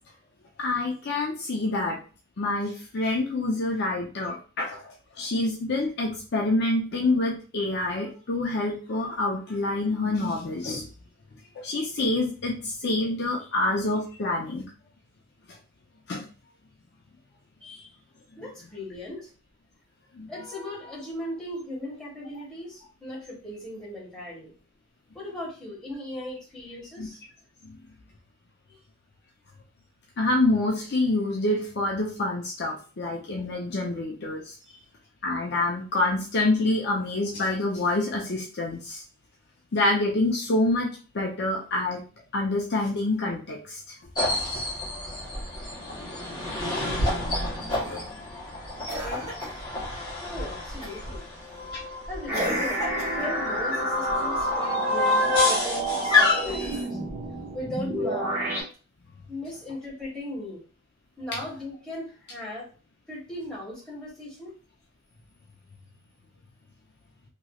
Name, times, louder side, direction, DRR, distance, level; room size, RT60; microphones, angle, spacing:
voice 1, 0.6-2.0 2.4-10.9 11.5-14.6 16.1-16.2 20.1-20.3 27.0-27.1 27.6-27.8 30.2-34.5 35.2-39.0 39.7-40.9 41.1-42.0 42.3-43.9 47.8-48.0 55.2-55.3, left 2 dB, 50° left, -2 dB, 0.6 m, -27 dB
voice 2, 17.6-17.9 18.4-19.3 20.3-24.5 25.1-27.2 28.7-28.8 34.7-34.8 50.3-51.2 52.1-52.8 53.1-57.0 57.5-58.4 59.3-60.6 61.2-62.7 63.1-64.5, left 1 dB, 5° left, -7 dB, 1.5 m, -38 dB
sound 1, 44.2-56.8, left 3 dB, 20° left, 1.1 m, -28 dB
Cough, 47.7-48.1 48.9-49.6 50.8-51.1 52.3-53.4 56.5-57.3 58.7-58.8, equal, 30° right, 1.4 m, -35 dB
sound 2, 52.3-58.6, right 2 dB, 10° right, 1.2 m, -29 dB
3.0 x 3.0 x 2.3 m, 0.36 s
head